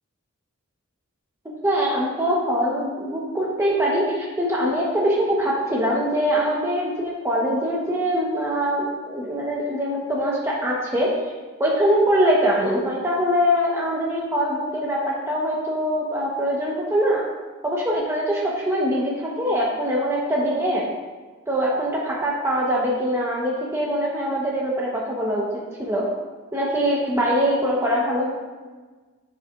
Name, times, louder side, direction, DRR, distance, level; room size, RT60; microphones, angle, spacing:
voice 1, 1.6-11.1 11.6-17.2 17.6-20.9 21.5-26.1 26.5-28.3, equal, 15° right, -4 dB, 1.1 m, -23 dB
13.0 x 6.7 x 2.5 m, 1.4 s
head